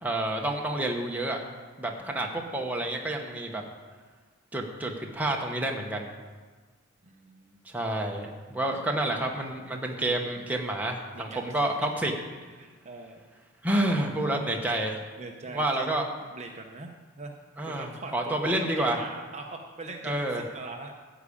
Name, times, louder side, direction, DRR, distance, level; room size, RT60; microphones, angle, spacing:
voice 1, 0.0-1.4 1.8-3.6 4.5-6.1 7.6-12.1 13.6-15.0 15.5-16.0 17.6-19.0 20.0-20.4, right 1 dB, 5° right, 0 dB, 1.1 m, -29 dB
voice 2, 1.9-2.4 7.0-7.6 8.5-8.6 11.1-11.5 12.6-13.2 14.3-14.4 15.2-16.1 16.3-16.9 17.2-17.4 17.7-20.2 20.5-20.9, right 3 dB, 30° right, 2 dB, 0.8 m, -42 dB
13.5 x 5.0 x 8.6 m, 1.4 s
head